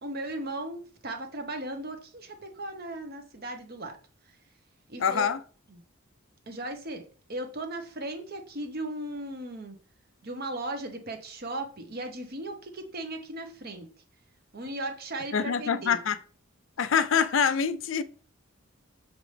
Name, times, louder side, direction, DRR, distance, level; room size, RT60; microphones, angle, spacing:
voice 1, 0.0-3.9 4.9-5.3 5.7-5.8 6.5-7.0 7.3-9.8 10.2-13.9 14.5-16.0, right 1 dB, 45° right, 1.1 m, -37 dB
voice 2, 5.0-5.4 15.3-16.2 16.8-18.0, left 7 dB, 65° left, 0.4 m, -25 dB
6.7 x 4.8 x 3.3 m
head